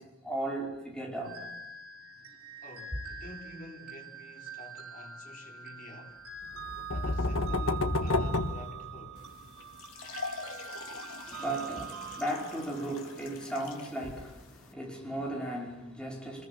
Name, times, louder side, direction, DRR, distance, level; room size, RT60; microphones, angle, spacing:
voice 1, 0.0-1.4 11.2-16.5, right 1 dB, 5° left, 5.1 m, -36 dB
sound 1, 1.2-13.6, right 6 dB, 90° right, 4.0 m, -45 dB
voice 2, 2.6-6.2 6.9-9.2, left 1 dB, 40° left, 3.8 m, -49 dB
sound 2, 6.5-9.5, left 2 dB, 65° left, 1.5 m, -30 dB
sound 3, 9.2-14.7, left 4 dB, 80° left, 2.9 m, -45 dB
25.5 x 21.0 x 8.8 m
head